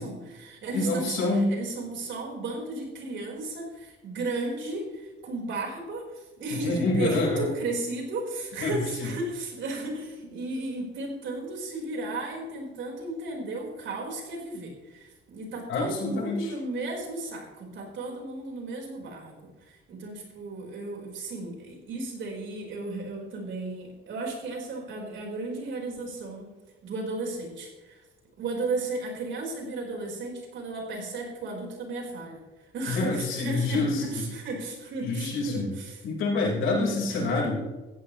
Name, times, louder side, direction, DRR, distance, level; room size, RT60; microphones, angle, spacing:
voice 1, 0.0-26.5 26.8-28.0 28.4-36.0 36.8-37.2, right 2 dB, 70° right, 0 dB, 4.8 m, -34 dB
voice 2, 0.7-1.5 6.5-7.5 8.6-9.1 15.7-16.5 32.9-34.2 35.0-35.7 36.0-37.6, left 3 dB, 85° left, -2 dB, 4.7 m, -27 dB
17.0 x 14.0 x 3.2 m, 1.2 s
cardioid pair, 90°, 20 cm